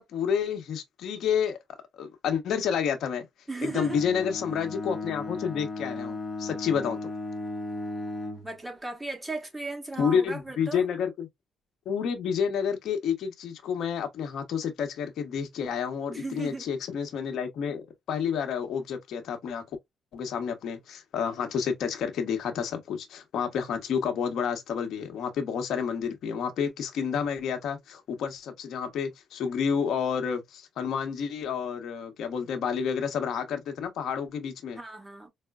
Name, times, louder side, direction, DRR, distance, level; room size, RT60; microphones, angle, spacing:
voice 1, 0.0-1.6 1.9-3.3 3.6-7.0 10.0-11.3 11.8-19.6 20.1-34.8, left 7 dB, 75° left, 0.9 m, -30 dB
voice 2, 3.5-4.0 8.4-10.8 16.1-16.7 34.7-35.3, right 2 dB, 10° right, 1.3 m, -36 dB
Bowed string instrument, 3.6-8.5, left 2 dB, 30° left, 0.9 m, -36 dB
4.8 x 2.1 x 2.3 m
cardioid pair, 90°, 0 cm